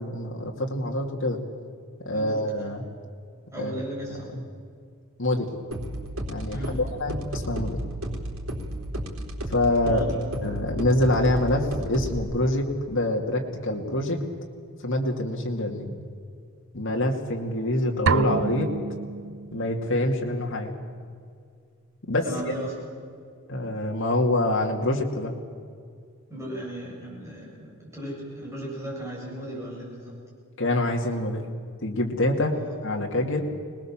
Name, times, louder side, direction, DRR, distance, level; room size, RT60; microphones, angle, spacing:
voice 1, 0.0-1.4 2.1-2.8 3.6-3.7 4.3-4.4 5.2-5.5 6.3-7.8 9.5-10.0 10.4-14.2 14.8-15.9 16.7-18.7 19.5-20.7 22.1-22.2 23.5-25.3 30.6-31.4 31.8-32.5 32.8-33.4, left 1 dB, 65° left, 0 dB, 2.4 m, -25 dB
voice 2, 3.5-4.4 6.5-6.8 9.8-10.2 22.2-22.7 26.3-30.1 32.5-32.7, equal, 15° right, -4 dB, 7.8 m, -36 dB
sound 1, 5.7-12.2, right 1 dB, 90° right, 3.8 m, -33 dB
sound 2, 18.1-19.9, right 5 dB, 60° right, 0.5 m, -27 dB
25.5 x 20.0 x 7.4 m, 2.2 s
head